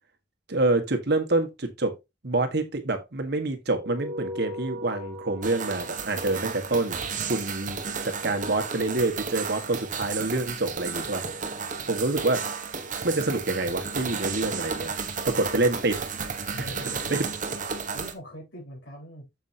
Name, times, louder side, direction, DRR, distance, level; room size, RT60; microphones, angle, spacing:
voice 1, 0.5-2.0 2.2-11.2 11.9-12.5 13.0-14.9 15.2-16.0 16.6-16.7 17.1-17.2, right 2 dB, 60° right, 1.6 m, -27 dB
sound 1, 3.8-8.6, left 1 dB, 80° right, 1.6 m, -40 dB
sound 2, 5.4-18.1, right 5 dB, 45° right, 1.2 m, -33 dB
voice 2, 16.5-17.4 17.9-19.3, equal, 75° left, 4.4 m, -43 dB
7.7 x 7.3 x 2.8 m
head